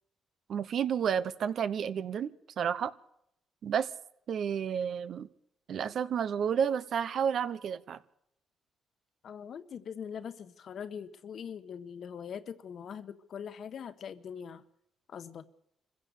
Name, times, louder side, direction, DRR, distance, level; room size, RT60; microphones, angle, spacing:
voice 1, 0.5-2.9 3.6-3.9 4.3-5.3 5.7-8.0, right 8 dB, 65° right, 1.0 m, -31 dB
voice 2, 9.2-14.6 15.1-15.5, left 7 dB, 60° left, 1.3 m, -42 dB
25.0 x 15.5 x 6.8 m
cardioid pair, 80°, 0 cm